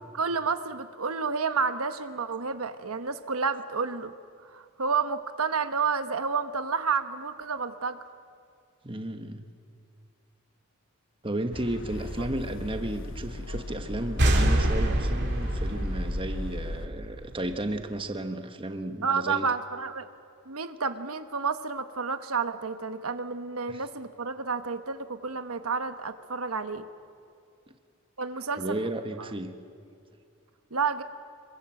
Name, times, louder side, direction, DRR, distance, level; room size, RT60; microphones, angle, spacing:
voice 1, 0.1-4.1 4.4-8.0 19.0-20.1 20.5-26.9 28.2-28.8 30.7-31.0, right 5 dB, 85° right, 9 dB, 1.2 m, -30 dB
voice 2, 8.8-9.4 11.2-19.4 23.7-23.8 27.7-27.8 28.6-29.6, right 1 dB, 25° right, 7 dB, 1.4 m, -33 dB
sound 1, 11.5-16.9, left 2 dB, 60° left, 1.1 m, -36 dB
sound 2, 14.2-17.7, right 1 dB, 55° right, 2.9 m, -26 dB
26.5 x 23.5 x 7.8 m, 2.4 s
head